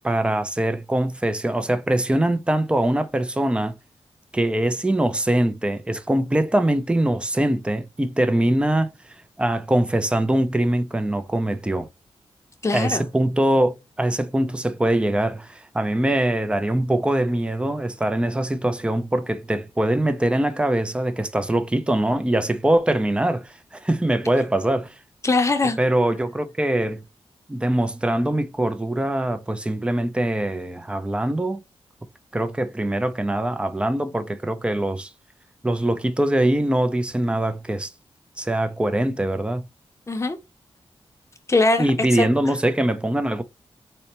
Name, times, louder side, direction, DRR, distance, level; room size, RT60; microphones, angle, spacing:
voice 1, 0.0-3.7 4.3-8.9 9.4-11.9 12.7-25.0 25.8-27.0 27.5-31.6 32.3-35.1 35.6-37.9 38.4-39.6 41.8-43.4, right 1 dB, 10° right, 0.5 m, -22 dB
voice 2, 12.6-13.0 25.2-25.8 40.1-40.4 41.5-42.3, left 3 dB, 25° left, 0.7 m, -21 dB
4.1 x 2.1 x 2.8 m
cardioid pair, 65°, 11 cm